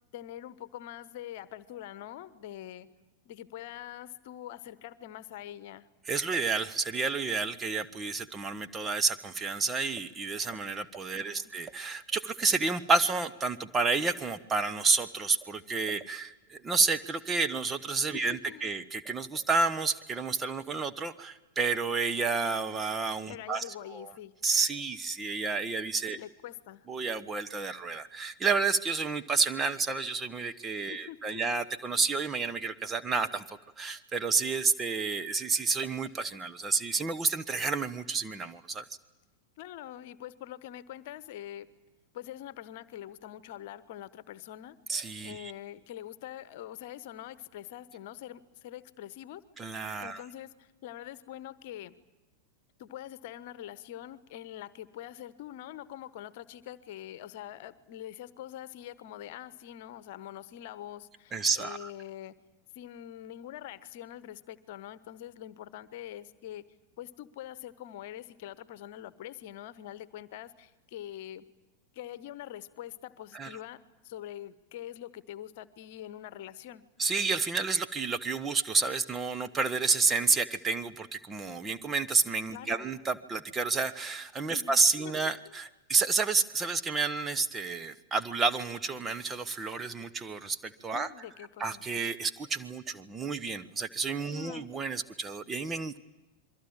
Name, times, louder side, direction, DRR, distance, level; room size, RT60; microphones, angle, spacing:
voice 1, 0.1-2.9 3.2-5.9 11.2-11.4 18.1-18.6 23.3-24.3 26.1-26.9 30.9-31.5 39.6-41.7 42.1-44.8 45.2-49.4 50.0-51.9 52.8-62.3 62.7-66.6 67.0-71.5 71.9-76.8 82.5-82.9 84.5-85.1 85.4-85.6 90.9-91.8 94.3-94.7, left 12 dB, 50° left, 16 dB, 1.2 m, -44 dB
voice 2, 6.1-23.6 23.9-24.1 24.4-26.2 26.9-33.4 33.8-38.8 44.9-45.5 49.6-50.2 61.3-61.9 73.3-73.5 77.0-91.1 91.6-96.0, right 4 dB, 20° right, 10 dB, 1.2 m, -30 dB
27.5 x 23.0 x 8.9 m, 1.0 s
figure-of-eight pair, 90°, 0 cm